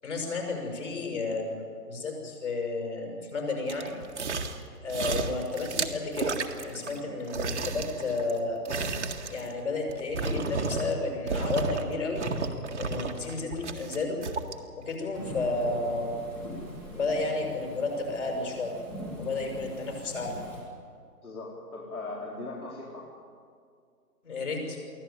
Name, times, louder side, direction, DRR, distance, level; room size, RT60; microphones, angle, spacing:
voice 1, 0.0-3.9 4.8-8.7 9.3-12.2 12.8-14.2 14.7-16.1 16.9-18.7 19.2-20.3 24.2-24.8, left 3 dB, 45° left, 1 dB, 6.5 m, -32 dB
sound 1, 3.7-4.6 4.9-7.0 7.3-11.0 11.3-11.8 12.1-14.5 15.0-15.1, right 4 dB, 45° right, 1.8 m, -32 dB
Thunderstorm / Rain, 15.1-20.6, left 1 dB, 5° left, 1.6 m, -41 dB
voice 2, 21.2-23.1, left 2 dB, 60° left, -4 dB, 4.4 m, -39 dB
23.5 x 16.0 x 9.2 m, 2.2 s
figure-of-eight pair, 160°, 48 cm